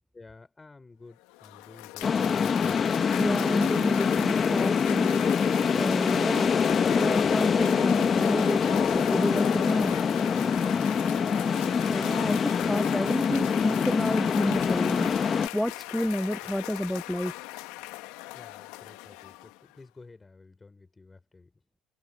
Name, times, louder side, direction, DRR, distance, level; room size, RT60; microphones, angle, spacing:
voice 1, 0.1-2.9 10.4-11.0 18.3-21.5, left 3 dB, 20° left, 4.9 m, -50 dB
Cheering / Applause, 1.1-19.8, left 19 dB, 85° left, 1.3 m, -39 dB
sound 1, 2.0-15.5, left 6 dB, 35° left, 1.4 m, -25 dB
voice 2, 3.2-5.1 5.7-6.5 7.0-10.0 11.9-15.1 15.5-17.3, equal, 5° left, 0.5 m, -30 dB
supercardioid pair, 95°, 0 cm